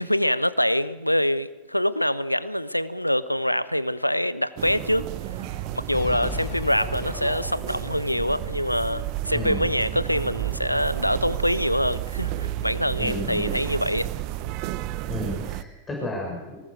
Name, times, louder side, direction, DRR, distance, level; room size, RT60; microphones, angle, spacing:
voice 1, 0.0-5.1 5.7-14.1, equal, 90° left, 0.7 m, -25 dB
sound 1, 4.6-15.6, right 14 dB, 45° right, 1.0 m, -32 dB
sound 2, 5.9-10.2, left 10 dB, 45° left, 1.1 m, -37 dB
voice 2, 9.3-9.6 13.0-13.6 15.1-16.6, left 1 dB, 15° left, 6.5 m, -32 dB
24.5 x 20.0 x 6.6 m
figure-of-eight pair, 90°, 0 cm